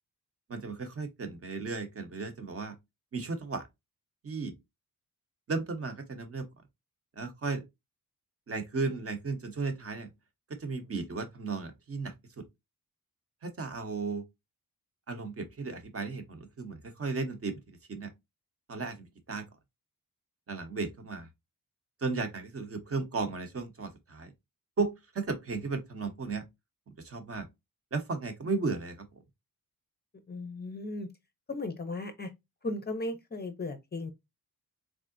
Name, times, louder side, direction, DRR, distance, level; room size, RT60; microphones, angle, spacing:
voice 1, 0.5-2.8 3.1-3.7 4.2-4.5 5.5-6.5 7.2-7.6 8.5-10.1 10.6-12.4 13.4-14.2 15.1-18.1 18.7-19.4 20.5-21.3 22.0-24.3 24.8-26.4 27.0-27.5 27.9-29.1, right 4 dB, 40° right, 0.8 m, -35 dB
voice 2, 30.3-31.1 31.5-32.3 32.6-34.1, left 2 dB, 30° left, 0.5 m, -36 dB
3.7 x 3.2 x 2.5 m
wide cardioid pair, 165°, 36 cm